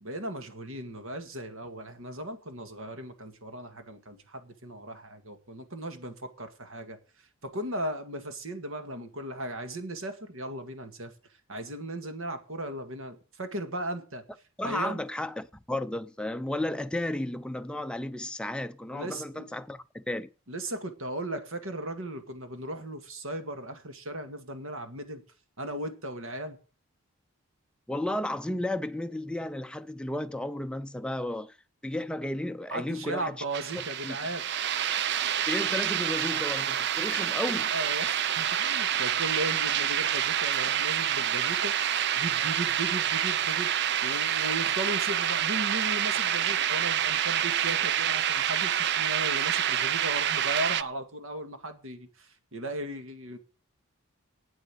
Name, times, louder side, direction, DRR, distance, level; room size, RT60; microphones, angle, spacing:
voice 1, 0.0-11.1 11.5-14.2 14.6-15.0 18.9-19.5 20.5-25.2 25.6-26.6 32.7-34.4 37.7-43.7 44.0-53.4, right 1 dB, 65° right, 1.9 m, -37 dB
voice 2, 14.6-20.3 27.9-31.6 31.8-33.4 34.0-34.2 35.5-37.7, left 1 dB, 5° left, 0.5 m, -33 dB
sound 1, 33.5-50.8, right 10 dB, 50° right, 0.5 m, -27 dB
9.0 x 8.2 x 8.4 m
head